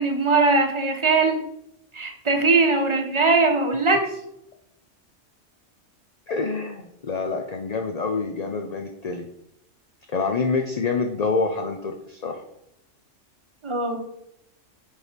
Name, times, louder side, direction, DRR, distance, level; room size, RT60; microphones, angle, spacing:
voice 1, 0.0-1.4 1.9-4.0 13.6-14.0, right 3 dB, 25° right, 4 dB, 1.0 m, -20 dB
voice 2, 6.3-9.2 10.1-12.4, left 4 dB, 40° left, 4 dB, 0.6 m, -27 dB
6.9 x 4.6 x 5.1 m, 0.78 s
omnidirectional pair, 1.3 m